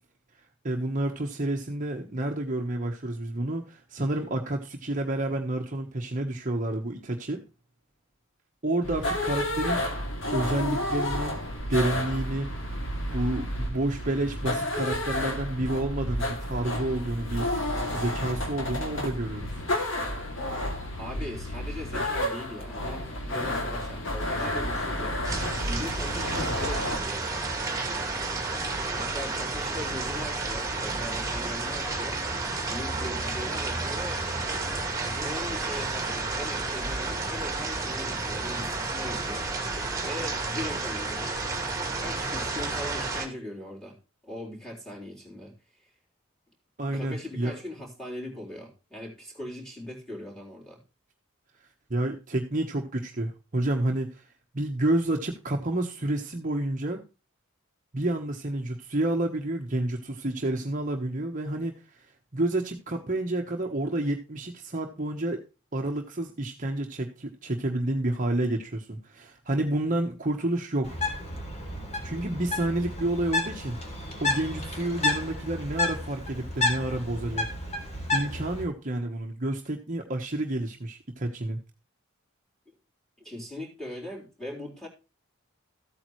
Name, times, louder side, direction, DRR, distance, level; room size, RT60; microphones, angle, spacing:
voice 1, 0.6-7.4 8.6-9.9 10.3-11.3 11.7-12.8 13.1-19.6 46.8-47.6 51.9-54.3 54.5-57.0 57.9-62.0 62.3-65.4 65.7-71.0 72.0-73.8 74.2-77.5 78.1-81.6, right 1 dB, 35° right, 2 dB, 1.2 m, -29 dB
sound 1, 8.8-27.0, left 1 dB, 60° left, 2.7 m, -31 dB
voice 2, 21.0-25.2 25.6-27.6 29.0-32.2 32.7-34.2 35.0-39.8 40.0-41.4 42.0-45.6 46.9-50.8 82.7-82.8 83.2-84.9, left 1 dB, ahead, -1 dB, 3.8 m, -40 dB
sound 2, 25.2-43.3, right 3 dB, 15° right, 2.2 m, -31 dB
Bird, 70.8-78.6, left 2 dB, 30° left, 2.9 m, -31 dB
14.0 x 8.7 x 3.2 m, 0.30 s
head